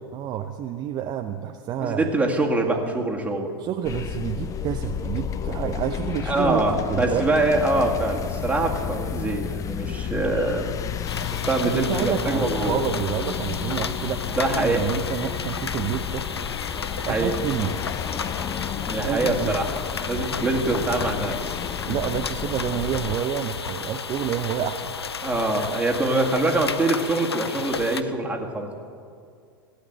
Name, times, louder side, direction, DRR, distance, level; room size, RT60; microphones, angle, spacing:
voice 1, 0.1-2.1 3.6-7.3 11.6-16.3 17.1-17.8 19.0-19.6 21.8-24.9, right 9 dB, 30° right, 5 dB, 0.7 m, -29 dB
voice 2, 1.8-3.5 6.3-10.8 11.5-12.8 14.4-14.9 17.0-17.3 18.3-18.4 18.9-19.7 20.0-21.6 25.2-28.7, right 2 dB, 10° right, 0 dB, 2.0 m, -24 dB
sound 1, 3.8-23.2, left 8 dB, 25° left, 0.6 m, -32 dB
sound 2, 11.1-28.0, left 6 dB, 85° left, 0.6 m, -33 dB
16.0 x 8.4 x 8.1 m, 2.3 s
figure-of-eight pair, 95°, 13 cm